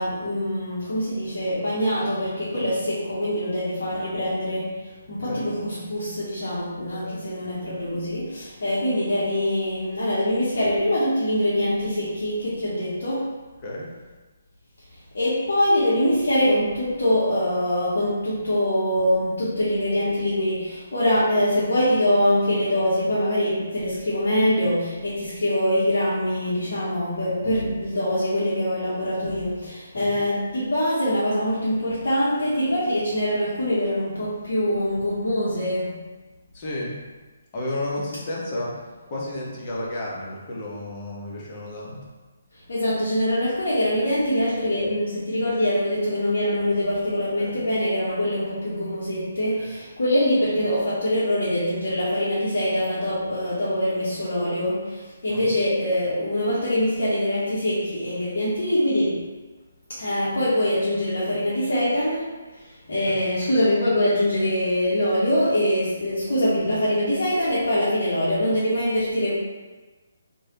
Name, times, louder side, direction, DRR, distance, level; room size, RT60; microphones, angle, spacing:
voice 1, 0.0-13.3 15.1-35.9 42.5-59.2 59.9-62.2 62.5-69.3, left 1 dB, 60° left, -10 dB, 0.8 m, -24 dB
voice 2, 5.1-5.4 7.0-7.2 13.6-13.9 29.9-30.1 36.5-36.9 37.5-38.7 39.1-42.0 47.4-47.6 49.6-49.7 55.3-55.5 63.1-63.2, left 1 dB, 30° left, -4 dB, 0.7 m, -32 dB
3.2 x 2.2 x 2.8 m, 1.3 s
figure-of-eight pair, 140°, 0 cm